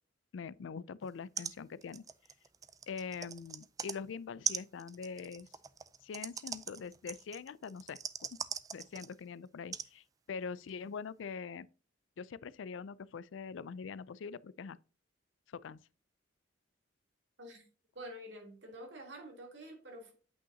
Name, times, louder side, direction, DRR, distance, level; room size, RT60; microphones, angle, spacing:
voice 1, 0.3-2.0 2.9-5.5 6.0-8.0 8.3-8.4 8.7-11.7 12.2-14.8 15.5-15.8, left 5 dB, 85° left, 0.4 m, -43 dB
sound 1, 1.1-1.2 1.4-1.6 1.8-4.0 4.4-9.2 9.7-9.9 10.7-10.8, right 7 dB, 20° right, 0.3 m, -41 dB
voice 2, 17.9-20.1, right 1 dB, 70° right, 2.9 m, -48 dB
8.6 x 5.6 x 2.7 m
head